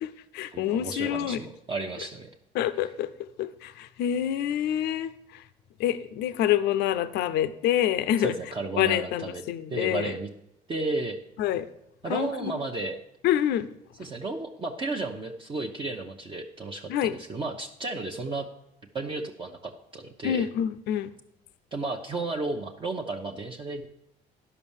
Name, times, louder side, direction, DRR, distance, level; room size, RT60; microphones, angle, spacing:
voice 1, 0.0-1.4 2.5-5.1 5.8-8.3 8.8-10.1 11.4-11.7 12.1-12.5 13.2-13.7 16.9-17.1 20.2-21.1, left 11 dB, 80° left, 14 dB, 0.6 m, -27 dB
voice 2, 0.5-2.3 2.8-2.9 8.2-9.4 9.7-10.3 10.7-11.2 12.0-13.0 14.0-18.5 18.9-20.5 21.7-23.9, right 3 dB, 30° right, 1 dB, 0.8 m, -33 dB
11.0 x 5.5 x 7.2 m, 0.83 s
cardioid pair, 110°, 17 cm